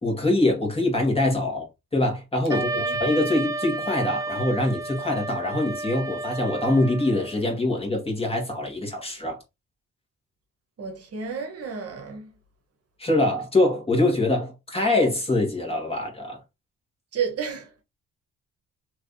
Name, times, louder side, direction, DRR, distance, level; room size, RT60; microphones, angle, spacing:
voice 1, 0.0-9.4 13.0-16.4, left 2 dB, 20° left, 1.7 m, -24 dB
Wind instrument woodwind instrument, 2.5-7.4, right 2 dB, 10° right, 0.3 m, -31 dB
voice 2, 2.5-2.9 10.8-12.3 17.1-17.8, right 6 dB, 50° right, 1.0 m, -32 dB
3.3 x 3.1 x 2.6 m
cardioid pair, 90°, 30 cm